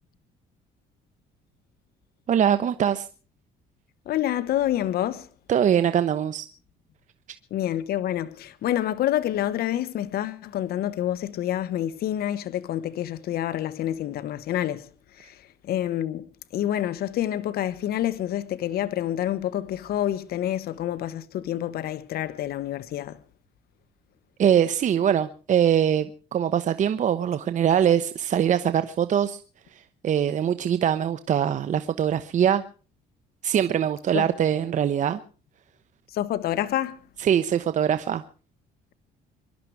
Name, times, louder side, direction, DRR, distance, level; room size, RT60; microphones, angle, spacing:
voice 1, 2.3-3.1 5.5-6.5 24.4-29.4 29.7-32.6 33.4-35.2 37.2-38.2, right 9 dB, 45° right, 0.9 m, -23 dB
voice 2, 4.1-5.3 7.5-14.9 15.2-15.4 15.6-23.2 34.1-34.3 36.1-37.0, left 12 dB, 65° left, 1.2 m, -28 dB
24.5 x 12.0 x 4.7 m
cardioid pair, 110°, 17 cm